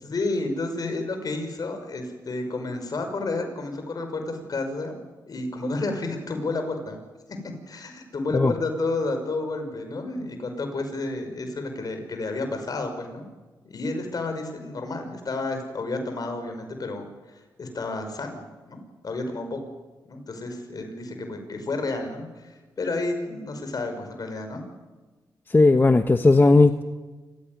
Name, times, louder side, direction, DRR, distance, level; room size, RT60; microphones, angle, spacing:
voice 1, 0.0-5.0 5.3-7.0 7.3-13.2 13.6-17.1 17.3-18.8 19.0-19.6 20.1-24.6, left 2 dB, 55° left, 5 dB, 5.7 m, -31 dB
voice 2, 25.5-26.8, left 3 dB, 25° left, 8 dB, 1.2 m, -16 dB
27.0 x 16.0 x 9.5 m, 1.3 s
cardioid pair, 65°, 8 cm